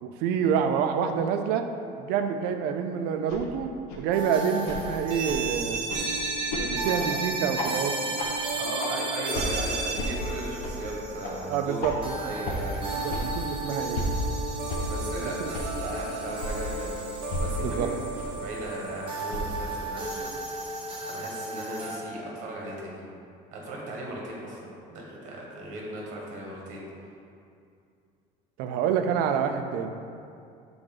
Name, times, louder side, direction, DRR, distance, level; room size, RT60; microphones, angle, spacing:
voice 1, 0.0-1.7 2.0-3.7 4.0-5.8 6.7-8.0 11.5-11.9 12.9-14.0 17.6-17.9 28.6-29.9, right 7 dB, 70° right, 6 dB, 0.5 m, -27 dB
sound 1, 3.3-3.4 3.9-4.0 4.6-4.8 5.3-5.4 5.9-6.0 6.5-6.6 7.0-7.1 7.5-7.7 8.2-8.3 8.8-8.9 9.3-9.5 10.0-10.1 10.6-10.7 11.2-11.3 11.8-11.9 12.4-12.6 13.1-13.2 13.9-14.1 14.7-14.8 15.5-15.6 16.4-16.5 17.3-17.4 18.1-18.3 19.3-19.5, left 1 dB, 70° left, 1.0 m, -32 dB
sound 2, 4.1-22.0, right 3 dB, 30° right, 1.1 m, -33 dB
voice 2, 8.5-12.8 14.9-16.9 17.4-20.3 21.0-23.0 23.5-26.8, right 1 dB, 50° right, -3 dB, 1.4 m, -37 dB
6.3 x 3.9 x 3.9 m, 2.5 s
cardioid pair, 160°, 17 cm